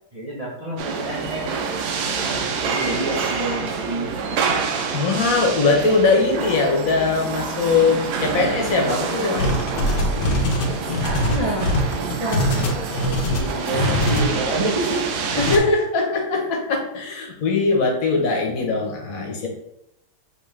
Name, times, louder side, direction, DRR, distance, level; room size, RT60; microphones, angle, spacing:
voice 1, 0.1-1.5 2.2-4.5 11.3-11.7 12.1-12.5 13.2-15.0, right 1 dB, 40° right, -5 dB, 0.5 m, -28 dB
sound 1, 0.8-15.6, right 5 dB, 75° right, 1.2 m, -27 dB
voice 2, 4.9-9.6 15.4-19.5, left 4 dB, 60° left, 1 dB, 1.3 m, -21 dB
sound 2, 9.4-14.3 15.3-15.6, left 1 dB, 85° left, 1.4 m, -22 dB
5.2 x 3.1 x 3.2 m, 0.84 s
omnidirectional pair, 1.8 m